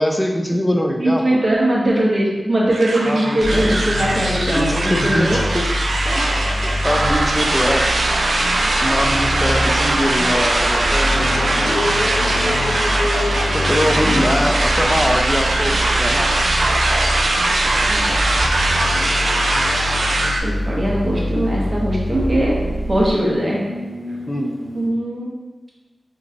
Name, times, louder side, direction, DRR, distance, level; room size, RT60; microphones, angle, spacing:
voice 1, 0.0-1.4 3.1-3.8 4.4-5.7 6.8-7.8 8.8-12.1 13.5-16.3 24.3-24.5, equal, 15° left, 2 dB, 0.5 m, -22 dB
voice 2, 1.0-5.4 6.1-6.2 14.0-14.3 17.9-18.2 19.0-19.4 20.4-22.6 22.9-23.7 24.7-25.3, right 1 dB, 45° right, -4 dB, 1.0 m, -20 dB
sound 1, 2.7-20.4, right 2 dB, 85° right, 0.4 m, -20 dB
sound 2, 3.4-23.1, left 1 dB, 65° right, 1.5 m, -25 dB
sound 3, 6.2-24.9, left 1 dB, 85° left, 1.0 m, -33 dB
4.0 x 2.9 x 2.5 m, 1.2 s
wide cardioid pair, 55°, 0 cm